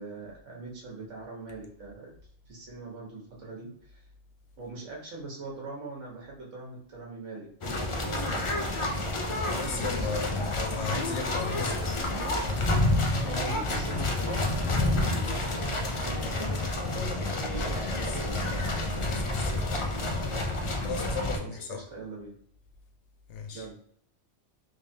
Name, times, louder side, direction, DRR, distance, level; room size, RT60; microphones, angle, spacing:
voice 1, 0.0-2.1 2.5-4.0 4.6-7.5 9.4-10.3 13.3-16.5 21.4-22.3 23.5-23.8, right 3 dB, 90° right, 1.6 m, -42 dB
sound 1, 7.6-21.4, left 2 dB, 50° left, 0.4 m, -29 dB
voice 2, 9.6-11.9 16.9-20.1 20.8-21.8 23.3-23.7, left 6 dB, 75° left, 0.9 m, -37 dB
3.5 x 3.3 x 2.7 m
omnidirectional pair, 1.2 m